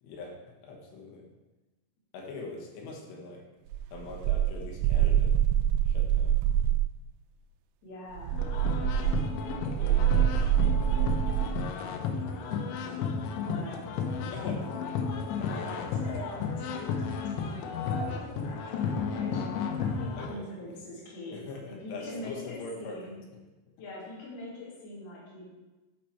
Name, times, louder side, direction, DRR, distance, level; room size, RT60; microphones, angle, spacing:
voice 1, 0.0-1.3 2.1-3.4 3.9-5.4 5.8-6.4 9.8-10.3 10.6-11.1 12.1-12.5 14.3-14.6 15.2-15.6 16.1-16.2 20.2-20.4 21.3-23.0, left 3 dB, 75° left, 0 dB, 3.3 m, -43 dB
sound 1, 3.7-6.9 8.1-11.6, right 10 dB, 85° right, 2.8 m, -25 dB
voice 2, 7.8-8.4 13.4-13.9 14.3-14.8 15.5-19.4 19.8-23.2 23.8-25.4, left 1 dB, 45° left, -6 dB, 2.8 m, -43 dB
sound 2, 8.3-20.3, left 5 dB, 90° left, 3.1 m, -33 dB
12.5 x 4.4 x 4.4 m, 1.1 s
omnidirectional pair, 5.1 m